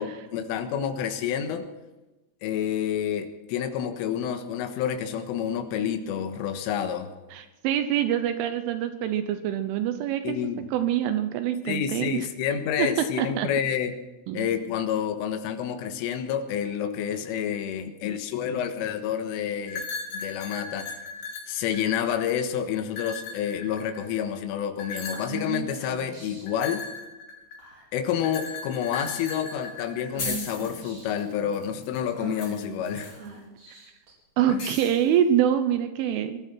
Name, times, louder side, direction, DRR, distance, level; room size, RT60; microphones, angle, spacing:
voice 1, 0.0-1.6 2.4-7.1 10.2-10.7 11.7-13.9 14.3-19.9 20.1-20.9 21.5-26.8 27.9-33.1 34.5-34.7, left 8 dB, 80° left, 6 dB, 3.9 m, -29 dB
voice 2, 7.3-10.4 10.7-12.2 12.8-12.9 13.2-13.5 14.3-14.5 33.7-33.8 34.4-36.4, right 10 dB, 80° right, 9 dB, 3.2 m, -25 dB
sound 1, 19.7-22.3 22.9-24.1 24.8-25.4 26.5-27.7 28.2-30.3, left 4 dB, 55° left, 4.0 m, -37 dB
Female speech woman speaking / Whispering, 25.1-26.6 27.6-28.0 28.4-28.6 28.9-29.4 30.1-31.2 32.1-34.1, right 4 dB, 35° right, 5.6 m, -39 dB
sound 2, 28.9-29.6 29.9-30.0 30.2-33.3 34.6-35.2, left 2 dB, 25° left, 7.9 m, -37 dB
22.5 x 14.0 x 4.5 m, 1.1 s
omnidirectional pair, 5.8 m